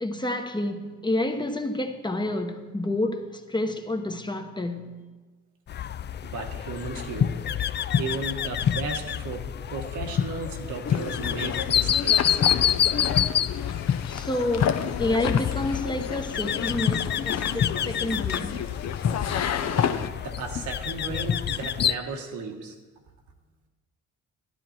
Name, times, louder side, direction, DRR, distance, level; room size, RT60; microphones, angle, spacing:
voice 1, 0.0-5.0 14.1-18.7, left 1 dB, 15° left, 1.0 m, -29 dB
sound 1, 5.7-22.0, left 9 dB, 35° left, 0.4 m, -27 dB
voice 2, 6.2-7.4 8.0-12.4 20.2-22.8, right 4 dB, 80° right, 1.7 m, -35 dB
sound 2, 10.8-20.1, left 8 dB, 60° left, 0.9 m, -31 dB
12.5 x 11.5 x 4.4 m
cardioid pair, 90°, 30 cm